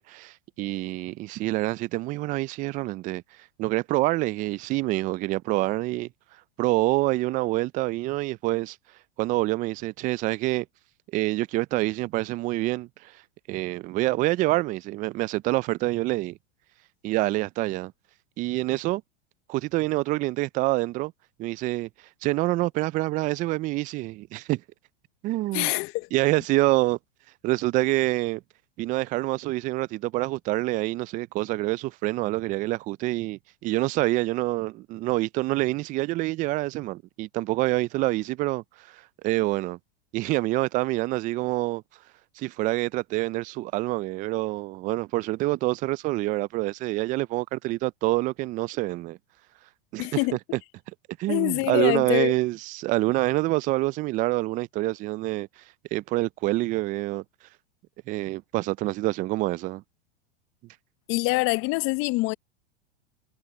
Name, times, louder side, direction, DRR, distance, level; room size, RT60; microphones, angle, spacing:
voice 1, 0.0-3.2 3.6-6.1 6.6-8.8 9.2-10.7 11.1-13.1 13.5-16.4 17.0-17.9 18.4-19.0 19.5-21.1 21.4-21.9 22.2-24.6 25.2-25.7 26.1-27.0 27.4-28.4 28.8-38.6 38.9-39.8 40.1-41.8 42.4-49.2 49.9-50.1 50.5-50.6 51.2-55.5 55.9-57.2 58.1-59.8, right 19 dB, 25° right, 0.3 m, -26 dB
voice 2, 25.5-26.1 50.0-50.4 51.3-52.3 61.1-62.3, left 24 dB, 40° left, 0.7 m, -25 dB
hypercardioid pair, 110°, 31 cm